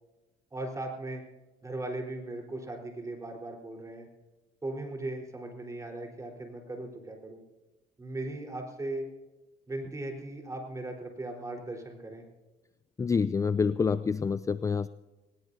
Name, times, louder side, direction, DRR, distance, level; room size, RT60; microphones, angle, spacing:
voice 1, 0.5-1.2 1.6-4.1 4.6-7.4 8.0-9.1 9.7-12.2, right 2 dB, 20° right, 1 dB, 4.1 m, -38 dB
voice 2, 13.0-14.9, left 5 dB, 20° left, 15 dB, 0.4 m, -27 dB
21.5 x 19.5 x 2.8 m, 1.1 s
cardioid pair, 110°, 17 cm